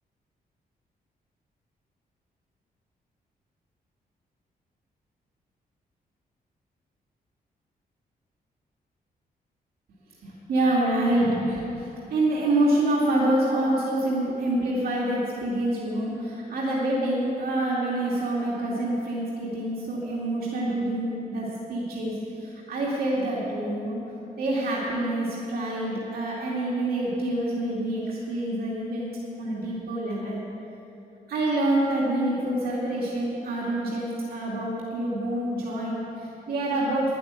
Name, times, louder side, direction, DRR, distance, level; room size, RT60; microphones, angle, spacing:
voice 1, 10.2-24.0 24.4-29.1 29.4-30.4 31.3-37.2, right 1 dB, 70° right, -5 dB, 2.3 m, -26 dB
11.0 x 8.6 x 9.5 m, 2.9 s
wide cardioid pair, 165°, 16 cm